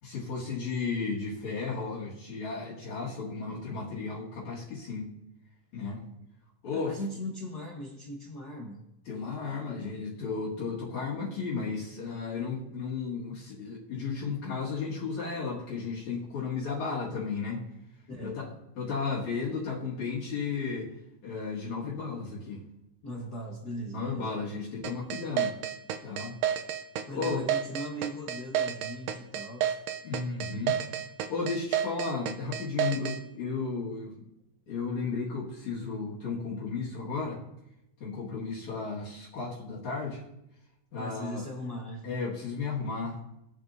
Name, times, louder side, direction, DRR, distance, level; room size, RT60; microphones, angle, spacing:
voice 1, 0.0-5.1 5.7-6.0 6.6-7.0 9.1-17.7 18.2-18.5 18.8-20.9 21.2-22.6 23.9-25.6 26.0-26.4 27.1-27.4 30.0-30.8 31.3-34.2 34.7-37.4 38.0-40.2 40.9-41.4 42.0-43.2, left 4 dB, 60° left, -5 dB, 3.0 m, -34 dB
voice 2, 6.7-8.8 18.1-18.4 23.0-24.3 27.1-29.8 41.0-42.0, equal, 90° left, 0 dB, 0.8 m, -39 dB
sound 1, 24.8-33.2, right 10 dB, 85° right, 2.3 m, -30 dB
21.5 x 7.3 x 2.6 m, 0.86 s
omnidirectional pair, 3.8 m